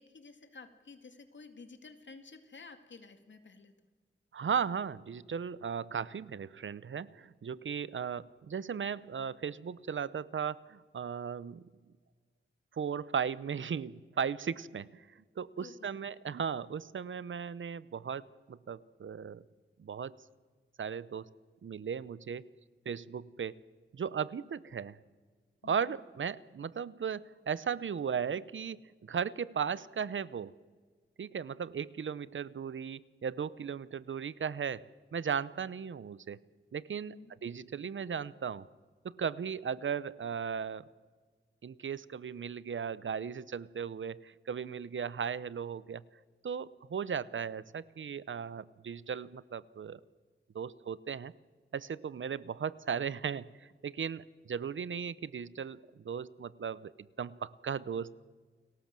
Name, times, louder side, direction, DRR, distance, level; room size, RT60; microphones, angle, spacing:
voice 1, 0.0-3.7 15.6-16.1 25.6-26.0 37.1-37.3, left 4 dB, 65° left, 8 dB, 2.2 m, -52 dB
voice 2, 4.3-11.7 12.8-19.4 19.8-20.2 20.8-21.2 21.6-22.5 22.9-23.5 23.9-25.0 25.6-30.5 31.2-34.8 35.1-36.4 36.7-38.7 39.0-40.8 41.6-46.0 46.4-50.0 50.5-51.3 51.7-58.2, right 7 dB, 75° right, 18 dB, 0.7 m, -37 dB
29.5 x 19.0 x 7.6 m, 1.5 s
wide cardioid pair, 125°, 20 cm